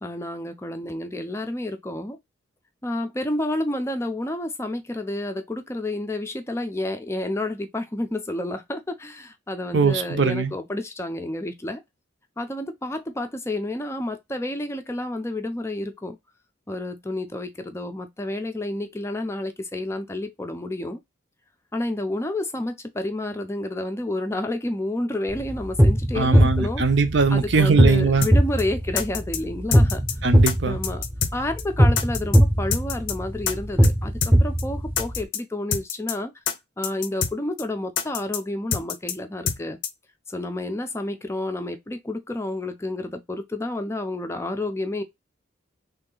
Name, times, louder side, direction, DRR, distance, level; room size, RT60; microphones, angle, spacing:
voice 1, 0.0-2.2 2.8-11.8 12.4-16.2 16.7-21.0 21.7-26.8 27.3-30.0 30.6-31.0 31.3-36.3 36.8-39.8 40.3-45.0, left 1 dB, 15° left, 0.5 m, -30 dB
voice 2, 9.7-10.5 26.2-28.3 30.2-30.8, right 4 dB, 65° right, 0.6 m, -21 dB
sound 1, 25.3-35.2, equal, 10° right, 0.8 m, -21 dB
sound 2, 28.2-28.3 28.6-28.7 29.0-29.4 29.7-30.1 30.5-30.6 30.8-31.3 31.6-31.7 32.0-32.4 32.7-33.1 33.5-33.6 33.8-34.0 34.2-34.3 34.6-34.7 35.0-35.4 35.7-36.1 36.5-36.6 36.8-37.3 37.6-37.7 38.0-38.4 38.7-39.1 39.5-39.6 39.8-39.9, left 7 dB, 70° left, 0.6 m, -26 dB
3.2 x 2.7 x 3.8 m
head